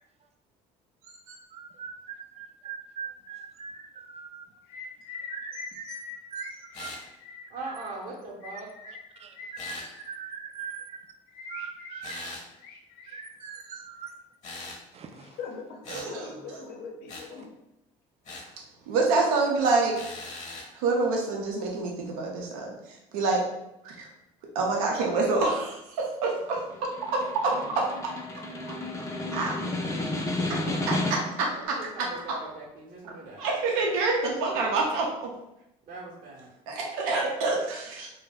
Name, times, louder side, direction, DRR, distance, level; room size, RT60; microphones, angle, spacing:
voice 1, 1.5-4.5 5.3-5.9 6.3-6.5 6.8-6.9 7.7-7.9 8.8-11.1 11.5-12.4 13.1-14.2 14.9-15.4 17.4-17.5, right 7 dB, 35° right, 6 dB, 0.4 m, -41 dB
voice 2, 4.7-7.5 8.4-10.3 11.3-12.2 12.6-13.3 15.1-17.5 27.5-27.8, left 5 dB, 70° left, 2 dB, 0.6 m, -43 dB
sound 1, 6.7-7.1 9.6-9.9 12.0-12.5 14.4-14.8 15.8-16.1 17.1-17.3 18.2-18.5 19.9-20.7, left 2 dB, 40° left, 0.9 m, -40 dB
voice 3, 7.5-8.7 31.5-33.4 35.9-36.5, right 2 dB, 55° right, -4 dB, 0.8 m, -40 dB
voice 4, 15.9-16.6 18.9-19.9 20.7-22.7 23.1-23.4 23.8-24.1 24.5-26.6 27.1-27.9 29.3-29.6 30.9-32.1 33.4-35.3 36.7-38.1, right 3 dB, 85° right, -1 dB, 0.5 m, -27 dB
Snare drum, 26.6-31.5, left 2 dB, 20° left, 0.5 m, -32 dB
2.3 x 2.0 x 3.4 m, 0.87 s
supercardioid pair, 70°, 17 cm